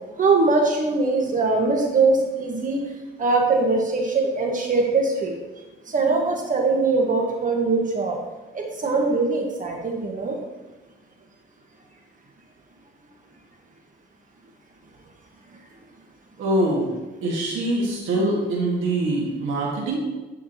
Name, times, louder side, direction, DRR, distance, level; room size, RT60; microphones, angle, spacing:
voice 1, 0.2-2.8 3.2-5.4 5.9-8.2 8.5-10.4, right 3 dB, 40° right, 1 dB, 1.5 m, -21 dB
voice 2, 16.4-16.9 17.2-20.0, right 1 dB, 90° right, -3 dB, 1.9 m, -23 dB
11.5 x 4.9 x 3.0 m, 1.1 s
cardioid pair, 90°, 20 cm